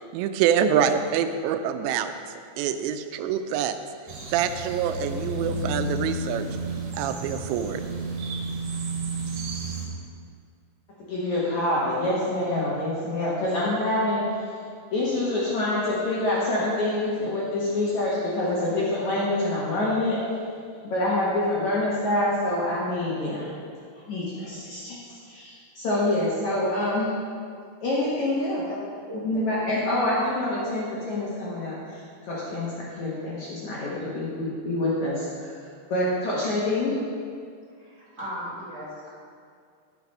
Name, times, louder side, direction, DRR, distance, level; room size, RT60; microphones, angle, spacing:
voice 1, 0.1-2.1 2.6-3.8 4.3-6.5 6.9-7.8, right 8 dB, 90° right, 9 dB, 2.8 m, -25 dB
sound 1, 4.1-9.9, right 2 dB, 70° right, 3.4 m, -32 dB
voice 2, 11.1-14.5 14.9-20.2 20.8-23.5 24.1-27.1 27.8-28.6 29.2-35.5 35.9-37.0, left 1 dB, 55° left, -7 dB, 2.2 m, -26 dB
voice 3, 28.7-29.6 37.8-39.1, equal, 20° right, -9 dB, 2.5 m, -37 dB
10.5 x 6.9 x 5.4 m, 2.2 s
omnidirectional pair, 4.9 m